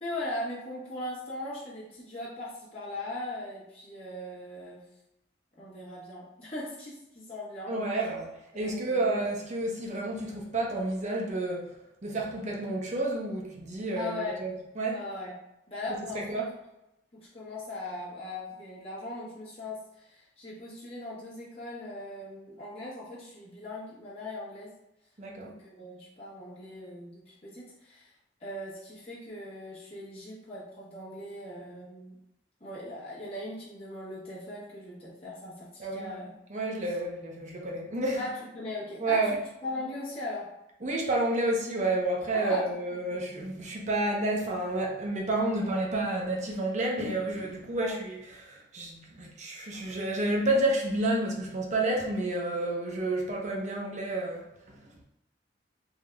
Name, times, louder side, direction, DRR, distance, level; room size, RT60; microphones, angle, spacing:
voice 1, 0.0-4.9 5.6-7.8 8.5-9.0 14.0-14.4 14.9-15.3 15.7-16.4 17.1-24.7 25.4-28.1 28.4-32.2 32.6-36.3 38.2-40.5 42.3-42.7 47.7-48.0, left 2 dB, 35° left, -8 dB, 1.3 m, -39 dB
voice 2, 7.7-15.0 16.1-16.5 25.2-25.5 35.8-36.2 36.5-38.2 39.0-39.4 40.8-54.8, right 2 dB, 40° right, -1 dB, 0.8 m, -30 dB
3.6 x 2.6 x 3.4 m, 0.89 s
head